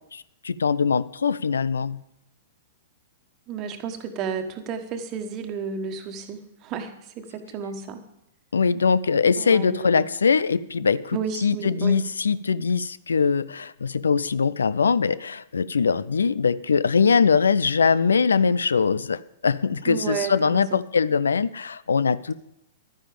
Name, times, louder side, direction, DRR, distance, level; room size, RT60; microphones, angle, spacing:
voice 1, 0.1-2.0 8.5-22.3, left 5 dB, 80° left, 18 dB, 0.4 m, -22 dB
voice 2, 3.5-8.0 9.4-10.1 11.1-12.0 19.9-20.9, right 6 dB, 35° right, 7 dB, 1.4 m, -32 dB
11.5 x 10.0 x 5.1 m, 0.82 s
figure-of-eight pair, 105°, 0 cm